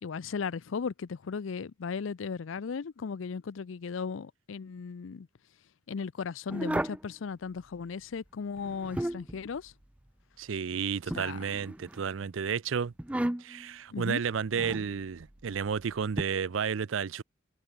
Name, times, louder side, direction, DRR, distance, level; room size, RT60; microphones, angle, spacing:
voice 1, 0.0-5.3 5.9-9.7 11.1-11.4 13.9-14.2, left 5 dB, 80° left, 0.5 m, -36 dB
sound 1, 6.5-7.1 8.6-9.4 11.1-12.0 13.0-13.7 14.5-14.9 16.2-16.3, right 1 dB, 5° right, 0.4 m, -33 dB
voice 2, 10.4-12.9 13.4-17.2, right 6 dB, 80° right, 0.5 m, -32 dB
head